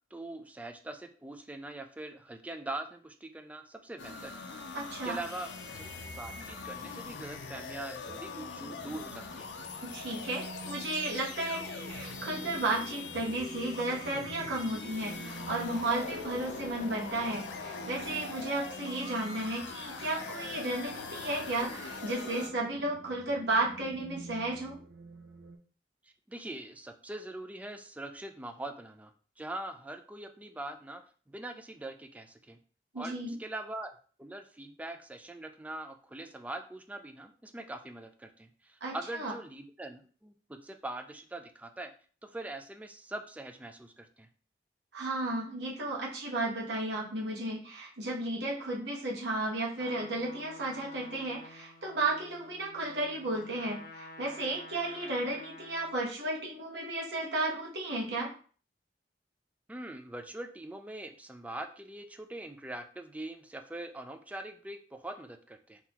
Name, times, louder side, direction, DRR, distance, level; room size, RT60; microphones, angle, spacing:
voice 1, 0.1-4.7 5.0-5.8 6.2-9.5 26.0-29.1 29.4-31.0 31.3-32.6 33.0-41.9 42.2-44.3 59.7-65.8, right 2 dB, 10° right, 7 dB, 0.3 m, -42 dB
sound 1, 4.0-22.5, left 4 dB, 85° left, 0.5 m, -42 dB
voice 2, 4.7-5.2 9.8-24.8 32.9-33.3 38.8-39.3 44.9-58.3, right 2 dB, 70° right, -3 dB, 1.1 m, -33 dB
sound 2, 8.1-25.6, right 3 dB, 90° right, 0.5 m, -50 dB
Trumpet, 49.7-56.0, left 2 dB, 50° left, 0.7 m, -50 dB
3.8 x 2.8 x 2.9 m, 0.42 s
head